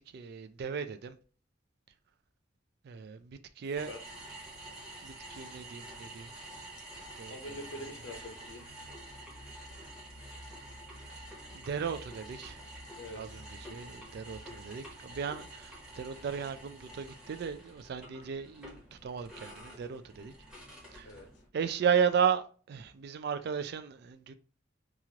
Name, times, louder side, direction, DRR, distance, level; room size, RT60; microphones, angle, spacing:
voice 1, 0.1-1.2 2.8-3.9 5.0-6.3 7.2-7.3 11.5-12.6 13.1-20.3 20.9-21.1 21.5-24.3, right 7 dB, 55° right, 0.3 m, -34 dB
sound 1, 3.7-21.5, right 1 dB, 5° right, 0.9 m, -48 dB
voice 2, 7.3-8.7 13.0-13.5 21.0-21.3, left 1 dB, 65° left, 0.6 m, -45 dB
3.0 x 2.4 x 2.8 m
head